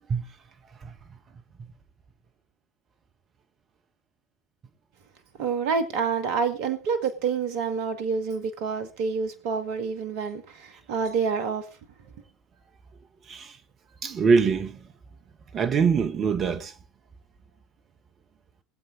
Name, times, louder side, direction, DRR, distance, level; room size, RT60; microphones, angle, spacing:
voice 1, 5.4-11.7, right 5 dB, 60° right, 1.9 m, -28 dB
voice 2, 14.0-14.8 15.5-16.7, right 5 dB, 35° right, 1.8 m, -23 dB
22.0 x 7.7 x 3.9 m
hypercardioid pair, 75°, 0 cm